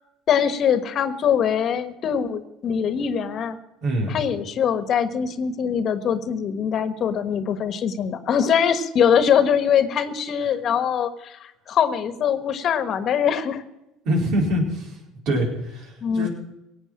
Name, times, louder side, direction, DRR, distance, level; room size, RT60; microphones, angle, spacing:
voice 1, 0.3-3.6 4.1-13.6 16.0-16.3, left 8 dB, 50° left, 11 dB, 1.3 m, -22 dB
voice 2, 3.8-4.1 14.0-14.9 15.3-16.3, equal, 70° right, 0 dB, 4.5 m, -24 dB
17.0 x 8.2 x 7.5 m, 0.93 s
supercardioid pair, 85°, 0 cm